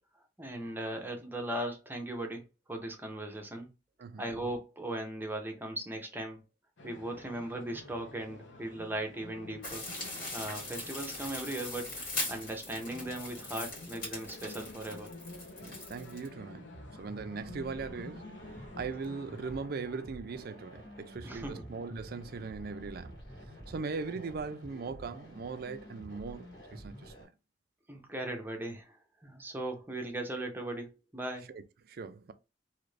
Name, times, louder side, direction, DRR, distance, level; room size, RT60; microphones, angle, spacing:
voice 1, 0.4-2.4 2.7-3.7 4.2-6.4 6.8-9.8 10.3-15.1 21.2-21.7 27.9-29.0 29.2-31.5, right 1 dB, 10° right, 0.7 m, -38 dB
sound 1, 6.8-19.6, left 2 dB, 85° left, 0.8 m, -50 dB
sound 2, 9.6-16.3, left 2 dB, 55° left, 1.7 m, -40 dB
voice 2, 15.6-16.7 17.0-23.2 23.7-27.3 31.5-32.3, right 4 dB, 55° right, 0.4 m, -40 dB
sound 3, 16.7-27.3, equal, 70° left, 1.9 m, -49 dB
2.8 x 2.5 x 3.2 m
head